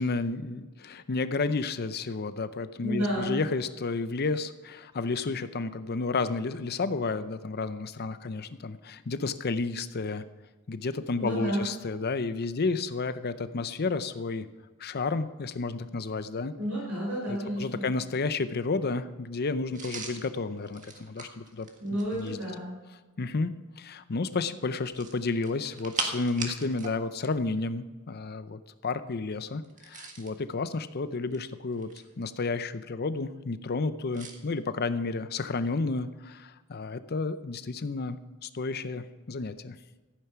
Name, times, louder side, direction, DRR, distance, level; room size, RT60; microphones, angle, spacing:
voice 1, 0.0-10.2 10.7-14.5 14.8-16.5 17.3-22.4 23.2-31.9 32.2-39.8, left 3 dB, 45° left, 12 dB, 0.6 m, -31 dB
voice 2, 2.8-3.4 11.1-11.7 16.6-17.9 21.8-22.7, equal, 85° right, -5 dB, 5.4 m, -31 dB
sound 1, 19.7-22.4 24.8-27.0 27.2-27.4 29.6-30.4 31.1-32.2 34.1-34.4, right 4 dB, 35° right, 1.6 m, -39 dB
14.5 x 9.0 x 5.8 m, 1.3 s
head